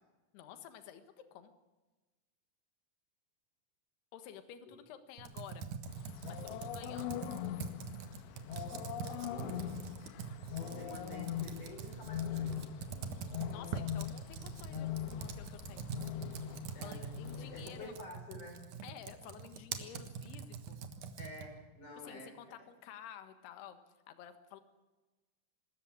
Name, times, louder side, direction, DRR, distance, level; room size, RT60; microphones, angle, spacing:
voice 1, 0.3-1.0 1.3-1.5 4.1-5.7 6.3-7.2 13.5-15.9 16.8-17.9 18.8-20.8 22.0-23.8 24.1-24.6, left 9 dB, 75° left, 9 dB, 3.4 m, -51 dB
Computer keyboard, 5.2-21.6, right 6 dB, 60° right, 2.4 m, -44 dB
sound 1, 5.9-18.0, left 11 dB, 90° left, 3.2 m, -42 dB
voice 2, 9.3-9.7 10.5-12.6 16.7-18.6 21.2-22.3, left 1 dB, 45° left, 2 dB, 6.9 m, -49 dB
25.0 x 13.5 x 8.7 m, 1.2 s
omnidirectional pair, 4.9 m